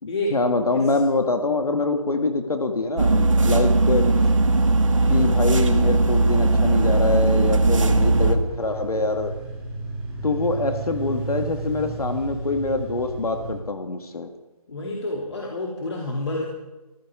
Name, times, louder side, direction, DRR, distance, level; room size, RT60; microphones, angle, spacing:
voice 1, 0.0-4.1 5.1-9.3 10.2-14.3, left 3 dB, 70° left, 6 dB, 1.9 m, -24 dB
sound 1, 3.0-8.3, right 2 dB, 55° right, 2.1 m, -18 dB
sound 2, 5.7-13.5, right 3 dB, 5° right, 2.2 m, -34 dB
voice 2, 14.7-16.5, left 2 dB, 45° left, -1 dB, 2.9 m, -28 dB
25.0 x 14.5 x 3.7 m, 1.1 s
figure-of-eight pair, 165°, 20 cm